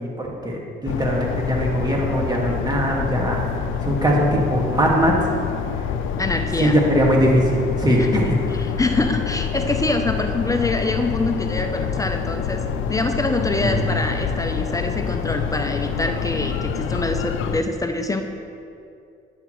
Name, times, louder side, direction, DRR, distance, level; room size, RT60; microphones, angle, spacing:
voice 1, 0.0-5.1 6.6-8.4 13.6-13.9, equal, 20° right, -2 dB, 1.9 m, -21 dB
sound 1, 0.8-17.6, left 7 dB, 85° left, 0.5 m, -27 dB
voice 2, 6.2-6.8 8.0-12.6 12.9-18.2, left 2 dB, 15° left, 5 dB, 0.6 m, -25 dB
10.5 x 8.3 x 3.1 m, 2.5 s
cardioid pair, 90°, 20 cm